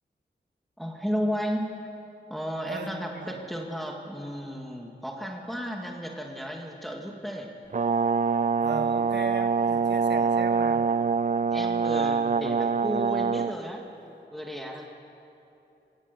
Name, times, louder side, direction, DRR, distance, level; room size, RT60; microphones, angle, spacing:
voice 1, 0.8-1.8 2.3-7.5 11.5-13.9 14.3-14.9, equal, ahead, 0 dB, 2.2 m, -33 dB
voice 2, 2.7-3.4 8.6-10.8, right 4 dB, 70° right, 6 dB, 1.6 m, -36 dB
Brass instrument, 7.7-13.5, right 5 dB, 45° right, 0.5 m, -25 dB
25.0 x 17.5 x 6.9 m, 2.8 s
wide cardioid pair, 95°, 18 cm